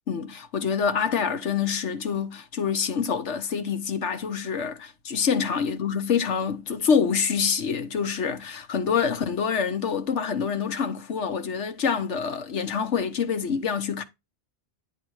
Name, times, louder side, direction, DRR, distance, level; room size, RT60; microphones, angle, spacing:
voice 1, 0.1-14.0, left 6 dB, 90° left, 1.4 m, -26 dB
10.0 x 3.6 x 4.7 m
omnidirectional pair, 1.2 m